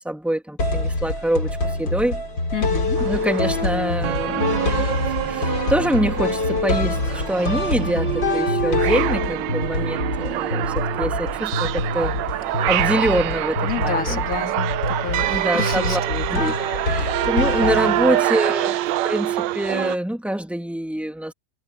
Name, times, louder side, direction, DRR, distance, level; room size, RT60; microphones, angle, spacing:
voice 1, 0.0-2.2 3.0-12.1 12.7-14.6 15.3-16.0 16.3-16.5 16.9-18.8 19.0-21.3, right 1 dB, ahead, 1.9 m, -25 dB
sound 1, 0.6-18.4, left 2 dB, 80° left, 5.3 m, -25 dB
voice 2, 2.5-3.0 12.5-12.6 13.6-16.2 17.6-18.2, left 6 dB, 50° left, 2.4 m, -30 dB
sound 2, 3.0-20.0, right 14 dB, 80° right, 1.3 m, -26 dB
omnidirectional pair, 1.9 m